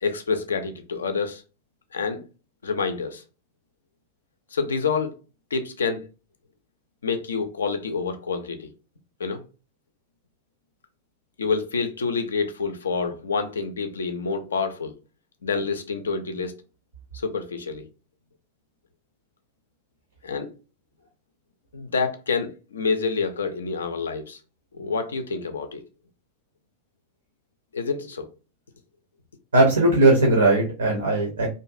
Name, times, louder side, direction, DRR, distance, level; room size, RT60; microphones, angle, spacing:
voice 1, 0.0-1.4 1.9-2.2 2.6-3.2 4.5-5.1 5.5-6.1 7.0-8.7 9.2-9.4 11.4-14.9 15.4-16.5 17.1-17.9 20.2-20.5 21.7-24.4 24.8-25.8 27.7-28.3, left 5 dB, 70° left, 0.4 m, -27 dB
voice 2, 29.5-31.5, right 2 dB, 75° right, 0.6 m, -18 dB
2.5 x 2.2 x 2.5 m
figure-of-eight pair, 90°, 0 cm